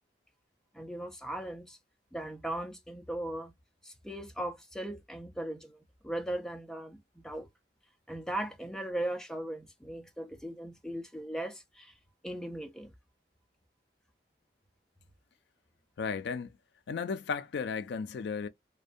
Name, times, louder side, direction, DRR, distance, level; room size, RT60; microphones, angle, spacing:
voice 1, 0.7-1.8 2.1-3.5 3.8-7.5 8.1-11.9 12.2-12.9, right 1 dB, 5° left, 0.4 m, -38 dB
voice 2, 16.0-16.6 16.9-18.5, left 5 dB, 65° left, 0.3 m, -34 dB
2.5 x 2.1 x 2.5 m
head